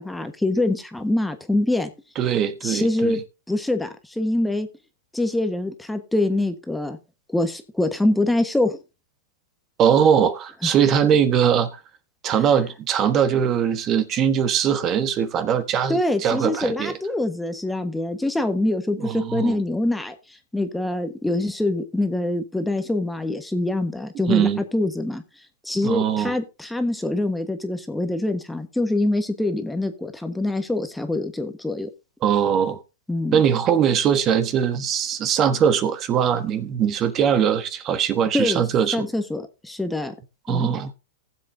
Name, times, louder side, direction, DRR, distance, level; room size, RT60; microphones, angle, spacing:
voice 1, 0.0-1.9 2.6-3.2 3.5-4.7 5.1-7.0 7.3-8.8 15.9-25.2 25.6-31.9 33.1-33.4 38.3-38.6 38.9-40.1 40.5-40.7, left 1 dB, 5° left, 1.3 m, -24 dB
voice 2, 2.2-3.2 9.8-11.8 12.2-17.0 19.0-19.6 24.3-24.6 25.8-26.3 32.2-32.8 33.3-39.0 40.5-40.9, right 8 dB, 30° right, 1.3 m, -21 dB
19.0 x 7.7 x 2.7 m
hypercardioid pair, 135°, 0 cm